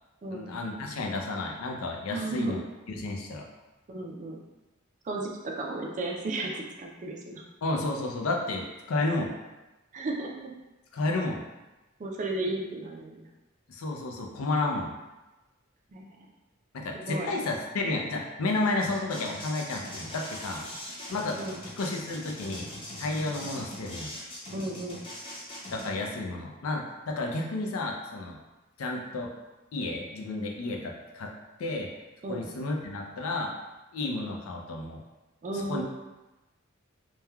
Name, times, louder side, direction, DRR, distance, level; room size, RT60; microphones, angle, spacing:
voice 1, 0.3-2.6 3.0-3.5 7.6-9.3 10.9-11.4 13.7-14.9 16.7-20.6 21.1-22.7 23.0-24.1 25.7-28.4 28.8-29.3 29.7-31.3 31.6-31.9 32.3-33.5 33.9-35.0 35.5-35.8, left 2 dB, 80° left, 1 dB, 0.5 m, -31 dB
voice 2, 2.1-2.5 3.9-4.4 5.1-7.4 9.9-10.5 12.0-13.3 15.9-16.1 16.9-17.3 21.3-21.6 24.5-25.0 32.2-32.5 35.4-35.8, right 2 dB, 35° right, 0 dB, 0.4 m, -34 dB
sound 1, 18.8-25.9, left 1 dB, 25° left, 0.5 m, -41 dB
3.2 x 2.2 x 2.2 m, 1.1 s
head